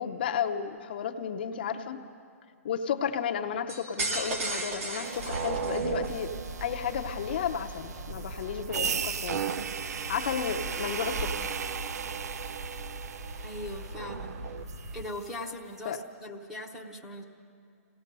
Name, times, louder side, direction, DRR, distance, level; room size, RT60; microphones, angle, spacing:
voice 1, 0.0-2.0 2.6-6.3 6.6-9.6 9.9-11.5 15.8-16.0, left 8 dB, 40° left, 4 dB, 0.7 m, -33 dB
voice 2, 1.5-2.0 13.4-14.4 14.9-17.2, left 1 dB, 5° right, 1 dB, 0.8 m, -40 dB
sound 1, 3.7-6.2, right 2 dB, 65° right, 2.4 m, -34 dB
sound 2, 5.0-15.1, right 7 dB, 90° right, 0.5 m, -36 dB
sound 3, 5.2-15.0, right 1 dB, 30° right, 1.5 m, -41 dB
28.0 x 17.5 x 5.4 m, 2.3 s
hypercardioid pair, 175°, 8 cm